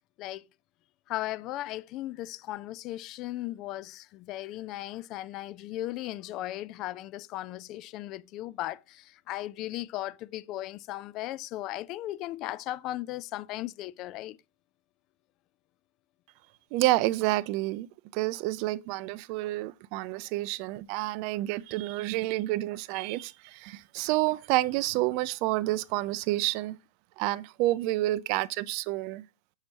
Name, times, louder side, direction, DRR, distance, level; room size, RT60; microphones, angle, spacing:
voice 1, 1.1-14.4, left 15 dB, 40° left, 0.4 m, -37 dB
voice 2, 16.7-17.9 18.1-26.8 27.2-29.2, right 17 dB, 50° right, 0.4 m, -29 dB
6.4 x 6.0 x 2.8 m
hypercardioid pair, 100°, 0 cm